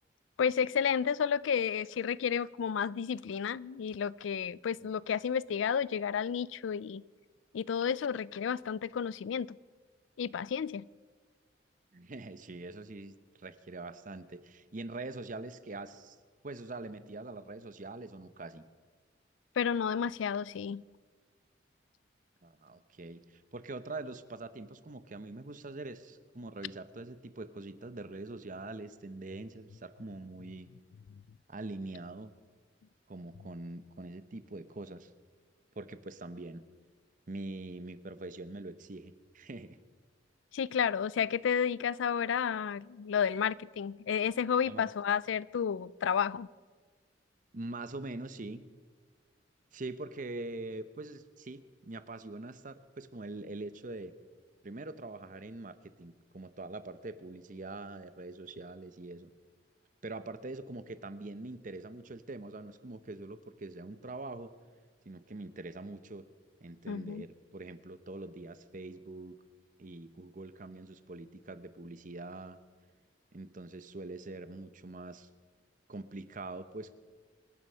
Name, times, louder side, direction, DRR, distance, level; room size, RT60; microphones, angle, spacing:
voice 1, 0.4-7.0 7.5-9.6 10.2-10.8 19.6-20.8 40.5-46.5 66.9-67.2, left 7 dB, 90° left, 21 dB, 0.4 m, -31 dB
voice 2, 11.9-16.2 16.4-18.6 22.4-30.7 31.5-32.3 33.1-35.1 35.8-36.6 37.3-39.8 44.7-44.9 47.5-48.6 49.7-54.1 54.6-59.3 60.0-64.5 65.1-66.2 66.6-69.4 69.8-72.6 73.3-75.3 75.9-76.9, right 2 dB, 45° right, 13 dB, 0.8 m, -43 dB
25.5 x 9.6 x 5.6 m, 1.5 s
head